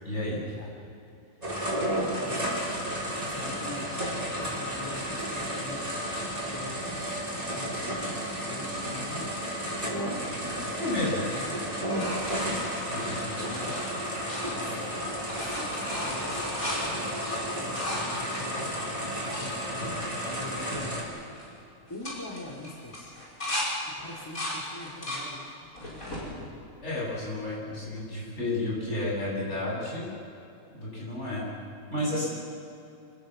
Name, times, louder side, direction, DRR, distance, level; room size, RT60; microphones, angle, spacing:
voice 1, 0.0-0.4 10.4-10.5 10.8-11.3 12.9-13.2 26.8-30.1 30.7-31.4 31.9-32.3, left 1 dB, 55° left, -6 dB, 8.0 m, -31 dB
voice 2, 1.3-1.6 2.1-2.5 3.2-5.9 6.4-7.8 8.5-9.5 11.2-11.7 13.4-13.8 14.6-16.3 16.7-17.0 17.5-21.2 21.9-23.1 23.9-26.6, left 2 dB, 15° left, -2 dB, 2.6 m, -44 dB
sound 1, 1.4-21.0, equal, 25° right, 4.6 m, -32 dB
sound 2, 11.3-14.9 15.2-19.5 20.1-20.2 20.4-20.8 21.1-21.5 21.9-23.7 24.1-25.3 25.8-26.3 26.9-27.6 29.2-29.3, left 1 dB, 85° left, 5.7 m, -36 dB
26.5 x 18.0 x 7.8 m, 2.8 s
omnidirectional pair, 1.4 m